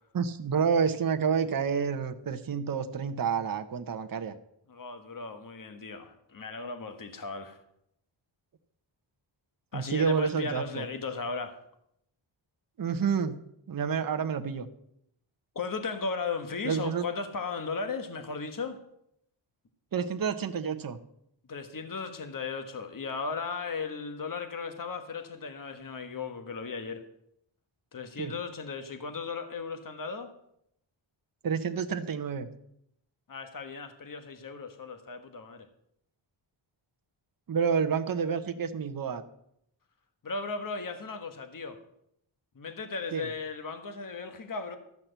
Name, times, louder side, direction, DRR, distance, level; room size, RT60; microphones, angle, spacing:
voice 1, 0.1-4.3 9.7-10.8 12.8-13.4 13.7-14.7 16.6-17.0 19.9-21.0 28.2-28.3 31.4-32.5 37.5-39.2 43.1-43.3, right 6 dB, 45° right, 6 dB, 0.9 m, -29 dB
voice 2, 4.7-7.6 9.7-11.6 15.5-18.8 21.5-27.0 27.9-30.3 33.3-35.7 40.2-41.8 42.5-44.8, left 4 dB, 40° left, 8 dB, 1.3 m, -36 dB
13.5 x 5.9 x 8.0 m, 0.75 s
wide cardioid pair, 125°, 48 cm